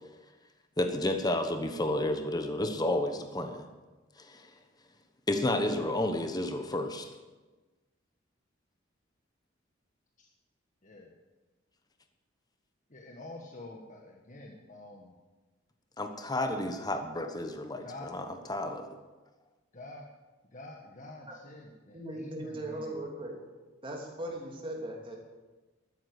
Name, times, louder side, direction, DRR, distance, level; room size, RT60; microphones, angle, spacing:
voice 1, 0.8-3.7 4.2-4.5 5.3-7.1 16.0-19.0, left 1 dB, 20° left, 6 dB, 1.0 m, -31 dB
voice 2, 12.9-15.1 17.8-18.1 19.7-20.0 20.5-22.9, left 2 dB, 40° left, -1 dB, 1.6 m, -47 dB
voice 3, 21.9-23.4 23.8-25.2, right 1 dB, 25° right, 0 dB, 2.9 m, -38 dB
13.0 x 9.6 x 8.1 m, 1.2 s
head